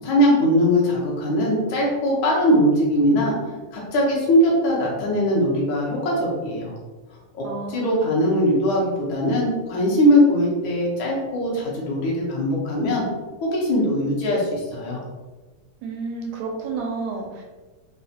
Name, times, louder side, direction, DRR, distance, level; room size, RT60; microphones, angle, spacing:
voice 1, 0.0-3.3 3.7-6.7 7.3-13.0 13.4-15.0, equal, 60° left, -4 dB, 1.4 m, -20 dB
voice 2, 7.4-8.2 15.8-17.4, right 4 dB, 80° right, 0 dB, 2.0 m, -31 dB
4.7 x 3.1 x 2.8 m, 1.3 s
omnidirectional pair, 3.5 m